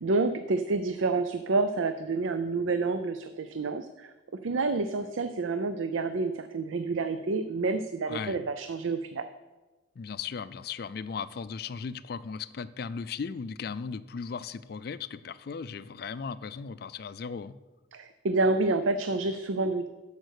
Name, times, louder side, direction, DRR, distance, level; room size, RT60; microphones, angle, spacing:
voice 1, 0.0-9.2 17.9-19.9, right 3 dB, 90° right, 9 dB, 0.5 m, -28 dB
voice 2, 8.1-8.4 10.0-17.6, left 5 dB, 50° left, 15 dB, 0.3 m, -37 dB
13.0 x 5.3 x 6.4 m, 1.2 s
head